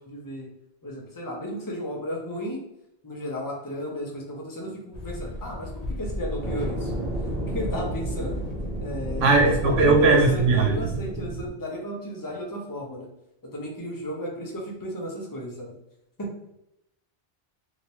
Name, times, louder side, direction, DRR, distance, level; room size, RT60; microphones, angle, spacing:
voice 1, 0.1-0.5 0.8-2.6 3.0-6.9 7.2-8.5 8.8-13.1 13.5-15.7 16.2-16.3, equal, 20° left, -2 dB, 0.7 m, -33 dB
sound 1, 4.9-11.1, left 1 dB, 55° left, 0.4 m, -35 dB
sound 2, 6.4-11.5, right 1 dB, 55° right, 1.0 m, -32 dB
voice 2, 9.2-10.9, right 3 dB, 85° right, 2 dB, 1.1 m, -19 dB
3.2 x 2.9 x 2.7 m, 0.84 s
omnidirectional pair, 1.2 m